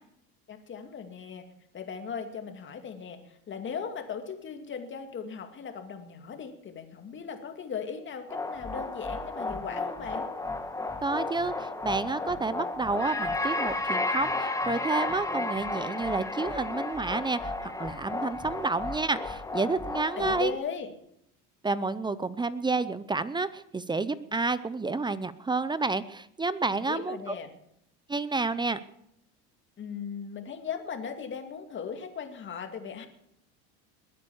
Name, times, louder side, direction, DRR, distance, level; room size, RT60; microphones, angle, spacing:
voice 1, 0.5-1.4 1.7-10.3 20.1-20.9 26.7-27.5 29.8-33.1, left 6 dB, 35° left, 6 dB, 2.4 m, -38 dB
sound 1, 8.3-20.5, left 2 dB, 10° left, 1.7 m, -33 dB
voice 2, 11.0-20.6 21.6-27.4 28.1-28.8, right 3 dB, 15° right, 16 dB, 0.6 m, -30 dB
20.5 x 9.4 x 7.1 m, 0.77 s
supercardioid pair, 110°, 33 cm